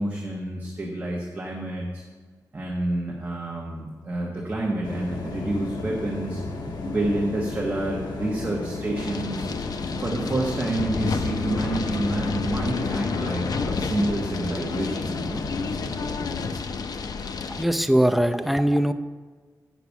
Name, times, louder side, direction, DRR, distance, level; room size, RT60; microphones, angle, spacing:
voice 1, 0.0-2.0 2.5-6.4 6.8-9.5 10.0-15.4, right 1 dB, 25° right, -3 dB, 1.1 m, -28 dB
sound 1, 4.8-16.5, left 3 dB, 75° left, 1.0 m, -34 dB
sound 2, 9.0-17.6, left 4 dB, 60° left, 0.5 m, -30 dB
voice 2, 17.5-18.9, equal, ahead, 8 dB, 0.4 m, -21 dB
8.2 x 5.9 x 7.1 m, 1.4 s
wide cardioid pair, 170°, 7 cm